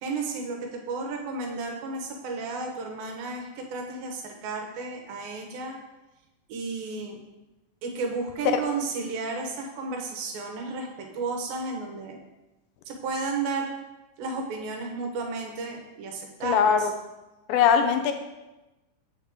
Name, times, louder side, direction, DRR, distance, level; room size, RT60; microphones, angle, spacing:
voice 1, 0.0-5.8 6.5-7.2 7.8-12.2 12.9-13.7 14.2-16.9, right 4 dB, 80° right, 2 dB, 2.8 m, -33 dB
voice 2, 16.4-16.9 17.5-18.1, left 7 dB, 85° left, 6 dB, 2.4 m, -21 dB
7.2 x 6.9 x 3.6 m, 1.0 s
omnidirectional pair, 4.1 m